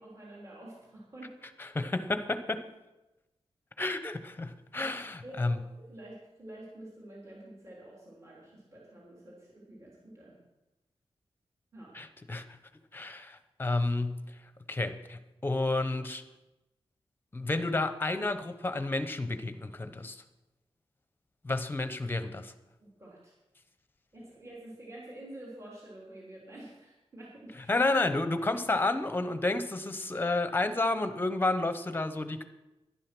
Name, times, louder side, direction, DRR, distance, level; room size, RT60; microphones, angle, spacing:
voice 1, 0.0-1.3 4.8-5.0 5.2-5.5 5.8-10.4 11.7-12.0 22.8-23.3 24.1-27.7, right 1 dB, 25° right, -5 dB, 3.4 m, -48 dB
voice 2, 1.6-2.7 3.8-5.6 11.9-12.6 12.9-14.4 14.7-16.2 17.3-20.2 21.4-22.5 27.7-32.4, left 2 dB, 20° left, 10 dB, 0.9 m, -31 dB
11.5 x 11.0 x 6.1 m, 1.0 s
wide cardioid pair, 160°, 11 cm